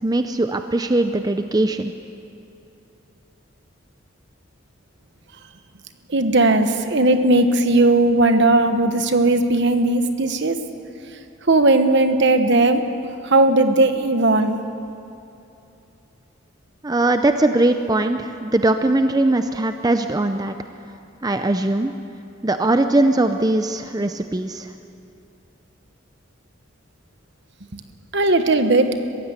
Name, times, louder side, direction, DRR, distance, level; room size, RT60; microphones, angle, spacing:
voice 1, 0.0-1.9 16.8-20.5 21.2-21.9 22.4-24.7, right 2 dB, 20° right, 7 dB, 0.6 m, -20 dB
voice 2, 6.1-10.6 11.5-12.8 13.2-14.6 28.1-29.0, right 2 dB, 60° right, 8 dB, 1.3 m, -17 dB
22.5 x 15.5 x 8.2 m, 2.8 s
head